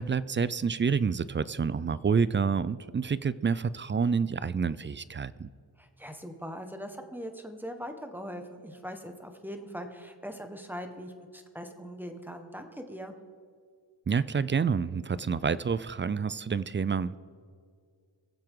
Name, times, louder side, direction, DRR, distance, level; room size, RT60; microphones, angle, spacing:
voice 1, 0.0-5.5 14.1-17.2, right 6 dB, 25° right, 18 dB, 0.4 m, -28 dB
voice 2, 5.8-13.1, equal, 5° right, 6 dB, 1.4 m, -41 dB
20.5 x 7.6 x 3.8 m, 2.1 s
cardioid pair, 65°, 47 cm